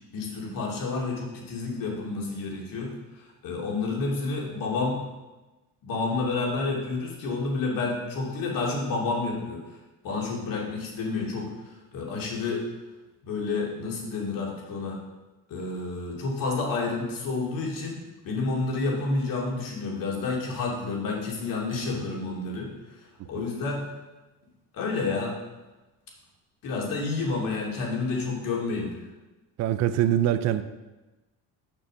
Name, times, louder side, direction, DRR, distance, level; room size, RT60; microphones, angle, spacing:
voice 1, 0.1-5.0 5.8-9.6 10.0-12.6 13.2-15.0 15.5-22.7 23.2-23.8 24.7-25.4 26.6-28.9, left 3 dB, 55° left, -2 dB, 2.7 m, -30 dB
voice 2, 29.6-30.6, right 11 dB, 45° right, 11 dB, 0.5 m, -23 dB
6.8 x 5.9 x 6.4 m, 1.1 s
cardioid pair, 125°, 39 cm